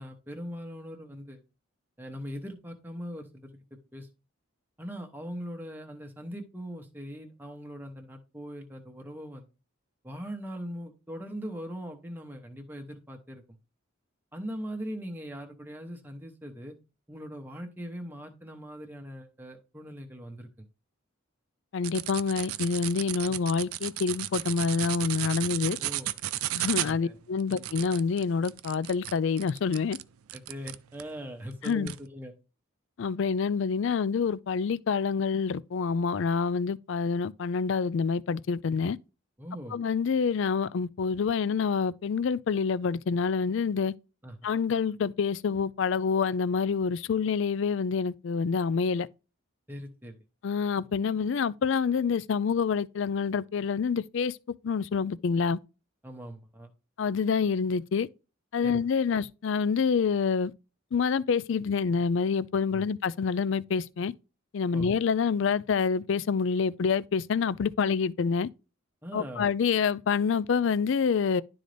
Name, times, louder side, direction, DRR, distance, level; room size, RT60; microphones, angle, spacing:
voice 1, 0.0-1.4 2.0-3.6 3.9-4.1 4.8-9.4 10.0-13.4 14.3-16.7 17.1-20.5 23.3-23.4 25.8-26.1 26.8-27.2 27.5-27.7 30.3-32.3 39.4-39.8 44.2-44.4 49.7-50.1 56.0-56.7 58.6-58.8 62.7-62.8 64.7-64.9 69.0-69.5, equal, 10° right, 1.0 m, -40 dB
voice 2, 21.7-25.8 26.5-30.0 31.6-31.9 33.0-39.0 39.7-43.9 44.4-49.1 50.4-54.4 54.6-55.6 57.0-58.1 58.5-60.5 60.9-64.1 64.5-68.5 69.1-71.4, left 5 dB, 60° left, 0.4 m, -27 dB
sound 1, 21.8-31.1 31.6-32.0, right 14 dB, 90° right, 0.4 m, -34 dB
11.5 x 3.9 x 3.4 m
head